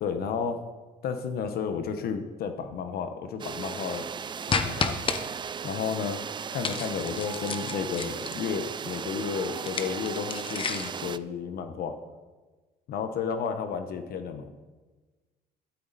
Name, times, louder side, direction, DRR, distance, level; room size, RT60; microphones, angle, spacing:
voice 1, 0.0-0.6 1.0-4.1 4.4-5.0 5.6-6.2 6.5-11.9 12.9-14.5, left 6 dB, 65° left, 8 dB, 1.1 m, -32 dB
sound 1, 3.4-11.2, right 7 dB, 25° right, 0.4 m, -36 dB
sound 2, 4.5-5.2 6.6-8.5 9.6-11.0, left 5 dB, 30° left, 1.0 m, -31 dB
12.5 x 12.0 x 4.2 m, 1.3 s
cardioid pair, 110°, 17 cm